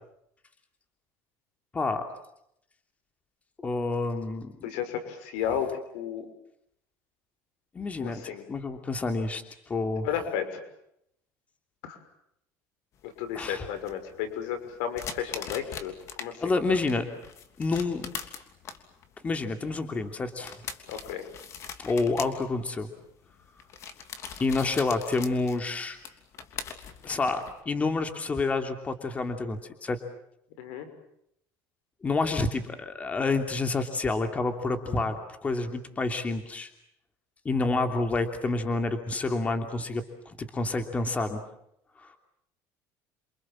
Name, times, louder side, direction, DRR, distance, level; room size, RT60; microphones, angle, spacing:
voice 1, 1.7-2.0 3.6-4.5 7.7-8.2 8.5-10.1 13.3-13.7 16.4-17.1 17.6-18.1 19.2-20.6 21.8-22.9 24.4-26.0 27.0-30.0 32.0-36.7 37.4-41.4 42.0-42.2, left 3 dB, 20° left, 6 dB, 3.0 m, -28 dB
voice 2, 4.6-5.7 5.9-6.3 8.0-8.4 10.0-10.6 11.8-12.0 13.0-15.9 16.2-16.3 20.9-21.2 30.6-30.9, left 9 dB, 90° left, 9 dB, 6.1 m, -33 dB
sound 1, 13.0-16.3 16.7-27.6, left 7 dB, 45° left, 3.1 m, -42 dB
29.0 x 26.0 x 7.6 m, 0.76 s
cardioid pair, 145°, 7 cm